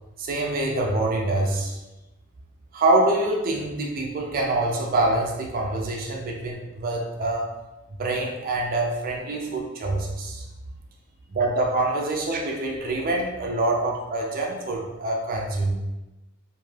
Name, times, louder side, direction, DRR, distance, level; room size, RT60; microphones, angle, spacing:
voice 1, 0.2-1.8 2.7-7.5 8.0-10.4 11.3-15.8, right 2 dB, 45° right, 0 dB, 0.4 m, -25 dB
2.5 x 2.3 x 3.2 m, 1.0 s
head